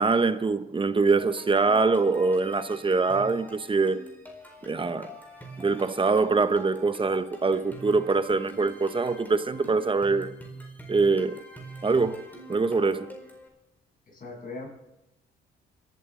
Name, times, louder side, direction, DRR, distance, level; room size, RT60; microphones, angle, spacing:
voice 1, 0.0-4.1 4.7-5.1 5.6-10.3 10.9-11.4 11.8-13.1, right 4 dB, 25° right, 0.9 m, -24 dB
sound 1, 1.2-13.5, right 1 dB, 10° left, 4.6 m, -45 dB
voice 2, 14.1-14.7, left 3 dB, 45° left, 8.0 m, -39 dB
25.5 x 12.5 x 3.8 m
cardioid pair, 90°, 20 cm